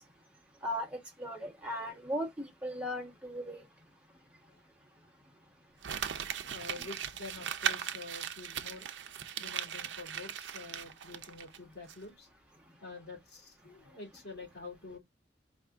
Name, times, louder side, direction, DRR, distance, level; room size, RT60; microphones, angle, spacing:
voice 1, 0.6-3.6, equal, 5° right, 1.2 m, -37 dB
Crumpling crinkling, 5.8-11.6 11.9-12.0, right 8 dB, 85° right, 0.5 m, -38 dB
voice 2, 6.4-8.9 9.4-12.3 12.8-15.0, left 3 dB, 60° left, 2.5 m, -47 dB
4.8 x 2.6 x 3.4 m
head